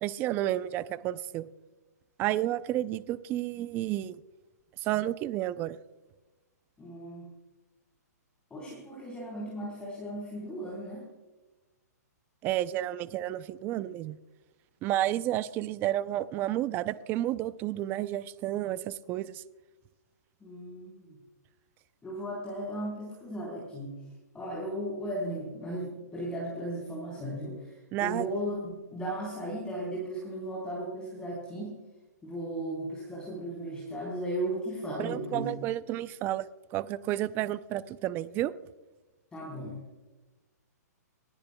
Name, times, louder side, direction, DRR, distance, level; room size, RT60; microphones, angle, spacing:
voice 1, 0.0-1.5 2.2-4.2 4.8-5.8 12.4-14.2 14.8-19.4 27.9-28.3 35.0-36.5 36.7-38.5, right 14 dB, 20° right, 15 dB, 0.5 m, -31 dB
voice 2, 6.8-7.3 8.5-11.1 20.4-21.2 22.0-24.0 24.3-31.8 32.2-35.5 39.3-39.8, right 1 dB, 10° left, -6 dB, 3.9 m, -36 dB
29.0 x 10.5 x 2.2 m, 1.2 s
hypercardioid pair, 150°, 9 cm